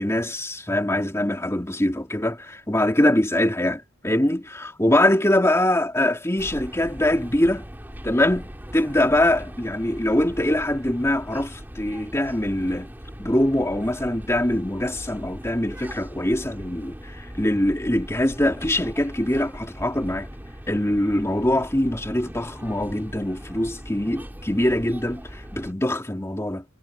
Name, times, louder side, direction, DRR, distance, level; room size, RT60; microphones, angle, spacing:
voice 1, 0.0-7.7 8.0-12.9 13.2-20.3 20.7-26.6, left 1 dB, 15° left, 2.5 m, -23 dB
sound 1, 6.4-25.7, equal, 10° right, 3.4 m, -40 dB
head